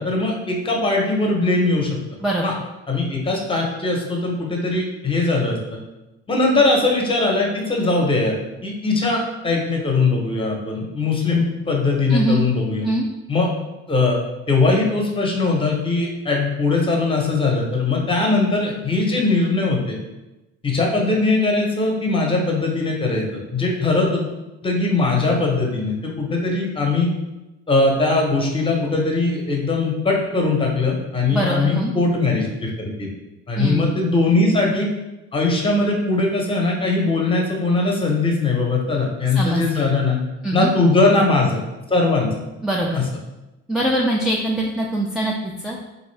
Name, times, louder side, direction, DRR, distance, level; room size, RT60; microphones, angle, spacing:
voice 1, 0.0-2.0 2.4-2.5 2.9-5.8 6.3-8.4 8.6-12.9 13.3-13.5 13.9-14.2 14.5-20.0 20.6-23.2 23.5-24.3 24.6-27.1 27.7-33.1 33.5-34.9 35.3-40.2 40.5-41.6 41.9-42.3 42.9-43.0, left 3 dB, 20° left, 0 dB, 0.8 m, -20 dB
voice 2, 12.1-12.4 12.8-13.0 31.3-31.9 33.6-34.0 39.4-39.9 40.4-40.7 42.6-43.0 43.7-45.8, right 1 dB, ahead, -3 dB, 0.3 m, -22 dB
3.7 x 2.6 x 3.2 m, 1.0 s
cardioid pair, 100°, 29 cm